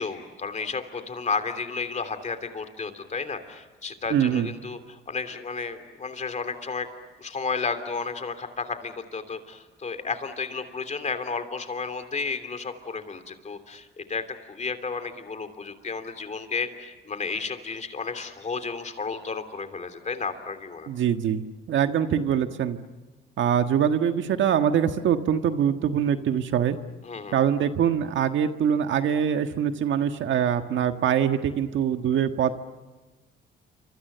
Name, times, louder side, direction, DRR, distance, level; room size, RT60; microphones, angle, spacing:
voice 1, 0.0-6.9 7.2-20.9 27.0-27.4, left 4 dB, 35° left, 8 dB, 3.1 m, -32 dB
voice 2, 4.1-4.5 20.9-21.4 21.7-22.8 23.4-26.8 27.3-32.6, right 8 dB, 75° right, 7 dB, 1.6 m, -23 dB
28.5 x 26.0 x 6.9 m, 1.2 s
cardioid pair, 90°, 20 cm